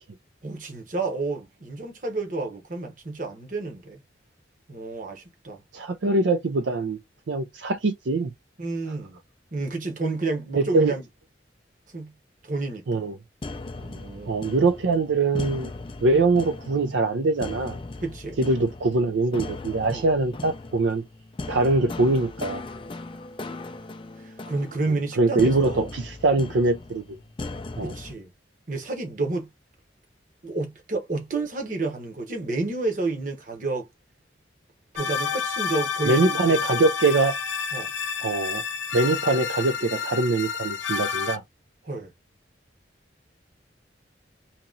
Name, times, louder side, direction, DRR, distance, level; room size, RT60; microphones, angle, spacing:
voice 1, 0.4-4.0 4.7-5.6 8.6-9.2 9.5-11.0 11.9-12.1 12.4-13.1 13.8-14.4 18.0-18.4 19.9-20.1 24.2-25.9 27.8-28.3 28.7-29.5 30.4-33.9 34.9-36.6 37.7-37.9 41.8-42.1, right 3 dB, 45° right, 1.0 m, -30 dB
voice 2, 5.7-7.0 7.3-8.3 10.6-10.9 12.9-13.2 14.3-15.7 16.0-17.8 18.4-21.0 21.5-22.6 25.2-27.2 27.8-27.9 36.1-37.4 38.2-38.6 38.9-41.4, right 3 dB, 75° right, 0.5 m, -23 dB
sound 1, 13.4-28.1, left 2 dB, 25° left, 0.4 m, -38 dB
sound 2, 35.0-41.4, left 6 dB, 85° left, 0.6 m, -29 dB
2.9 x 2.9 x 3.8 m
head